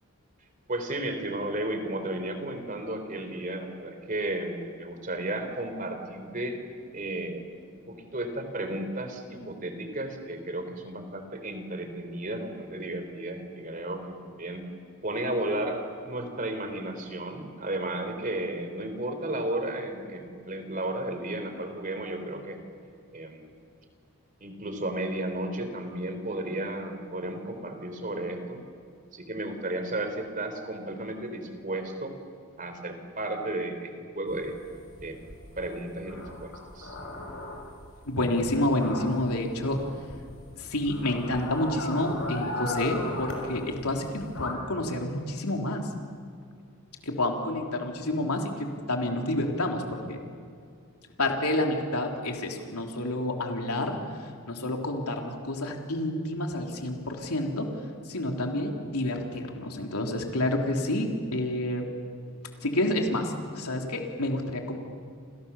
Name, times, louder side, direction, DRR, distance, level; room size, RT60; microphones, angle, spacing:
voice 1, 0.7-6.6 6.9-7.5 7.9-14.6 15.0-22.6 23.1-23.4 24.4-28.6 29.1-32.2 32.6-34.6 35.0-35.2 35.6-37.0, right 1 dB, 35° right, 7 dB, 3.5 m, -33 dB
sound 1, 34.3-44.5, left 2 dB, 60° left, 5.3 m, -39 dB
voice 2, 38.1-39.8 40.6-45.9 47.0-50.2 51.2-57.7 58.1-61.9 62.6-64.8, left 1 dB, 90° left, 2 dB, 3.5 m, -29 dB
29.5 x 27.5 x 7.2 m, 2.3 s
head